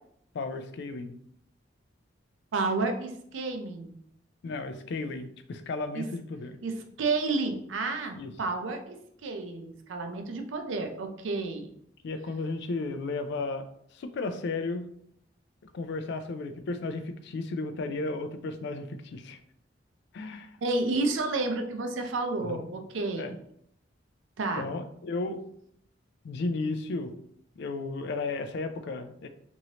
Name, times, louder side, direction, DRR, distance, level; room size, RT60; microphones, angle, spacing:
voice 1, 0.3-1.1 4.4-6.6 8.2-8.3 12.0-14.8 15.7-19.4 20.1-20.6 22.5-22.6 23.2-23.3 24.6-25.4 26.2-27.1 27.6-29.3, left 3 dB, 65° left, 8 dB, 0.4 m, -34 dB
voice 2, 2.5-4.0 5.9-6.0 6.6-9.0 9.2-11.7 20.6-23.4 24.4-24.7, right 3 dB, 85° right, 5 dB, 0.5 m, -31 dB
3.0 x 2.6 x 2.8 m, 0.69 s
head